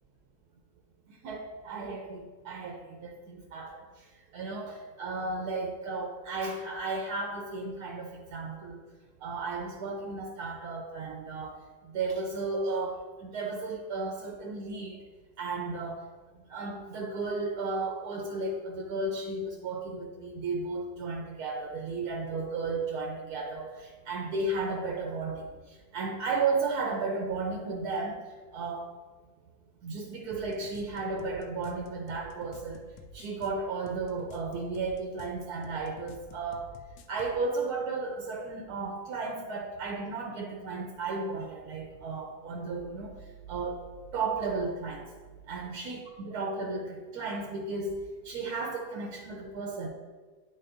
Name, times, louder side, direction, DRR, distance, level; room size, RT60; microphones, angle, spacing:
voice 1, 1.2-3.8 4.3-8.8 9.2-11.6 11.8-15.0 15.4-16.0 16.5-28.2 28.5-28.9 29.8-32.8 33.1-36.7 37.1-43.1 43.5-43.8 44.1-45.1 45.5-48.0 48.2-49.9, right 3 dB, 65° right, 1 dB, 1.1 m, -34 dB
sound 1, 30.3-37.4, left 3 dB, 80° left, 1.3 m, -50 dB
9.9 x 4.1 x 2.6 m, 1.4 s
omnidirectional pair, 2.1 m